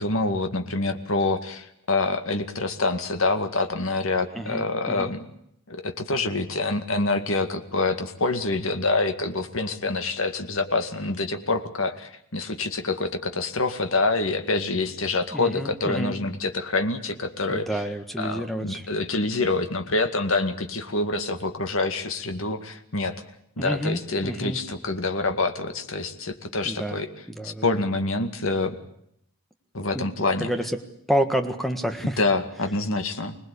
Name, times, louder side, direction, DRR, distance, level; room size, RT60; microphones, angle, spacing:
voice 1, 0.0-5.2 5.7-17.8 18.2-23.2 23.6-27.1 27.4-28.8 29.7-30.5 32.2-33.4, left 3 dB, 65° left, 7 dB, 2.2 m, -26 dB
voice 2, 4.3-5.1 15.3-16.2 17.5-18.9 23.6-24.6 26.6-27.0 27.3-27.8 29.9-30.0 30.4-30.7 31.1-32.2, equal, ahead, 7 dB, 1.6 m, -29 dB
25.5 x 19.5 x 8.6 m, 0.72 s
head